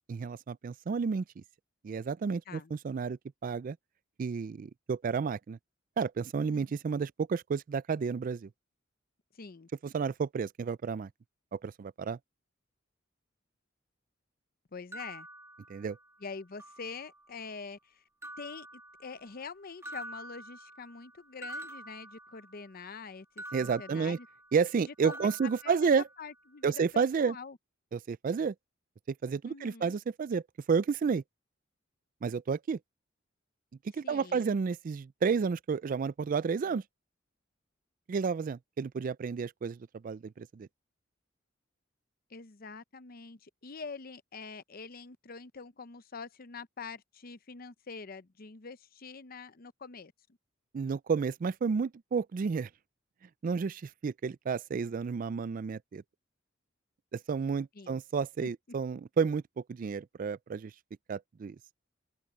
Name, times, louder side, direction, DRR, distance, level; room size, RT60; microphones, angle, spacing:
voice 1, 0.1-1.4 1.8-3.8 4.2-5.6 6.0-8.5 9.8-11.1 11.5-12.2 15.7-16.0 23.5-24.2 24.5-26.0 26.6-27.4 27.9-28.5 29.2-30.4 30.7-31.2 32.2-32.8 34.0-36.8 38.1-39.8 40.0-40.7 50.7-52.7 53.4-56.0 57.1-59.4 59.7-60.7 61.1-61.6, right 5 dB, 45° right, 0.3 m, -31 dB
voice 2, 9.3-9.7 14.7-15.3 16.2-18.0 18.4-24.3 24.9-25.3 25.6-25.9 26.2-27.6 29.5-30.0 34.0-34.5 42.3-50.1 57.7-58.0 58.4-58.5, left 4 dB, 50° left, 0.8 m, -45 dB
sound 1, 14.9-16.2 16.6-17.4 18.2-19.5 19.8-22.8 23.4-24.8 25.0-26.4, right 1 dB, 15° right, 1.6 m, -47 dB
open air
head